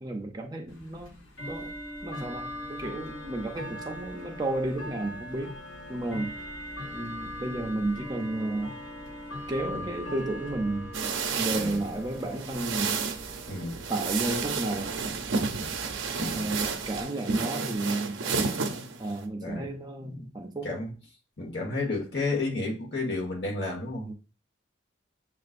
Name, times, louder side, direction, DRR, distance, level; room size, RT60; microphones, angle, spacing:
voice 1, 0.0-1.2 1.4-1.7 2.0-5.5 5.9-6.3 6.9-8.8 9.5-10.9 11.3-13.0 13.9-15.0 16.3-20.8 24.1-24.2, right 2 dB, 20° right, 0.5 m, -32 dB
Bell / Tick-tock, 0.7-17.0, equal, 85° left, 0.9 m, -41 dB
sound 1, 10.9-19.3, right 5 dB, 80° right, 0.6 m, -31 dB
voice 2, 13.5-13.8 16.2-16.5 19.4-19.7 20.0-20.3 20.6-20.9 21.4-24.1, left 3 dB, 60° left, 1.4 m, -32 dB
7.2 x 2.4 x 2.5 m
head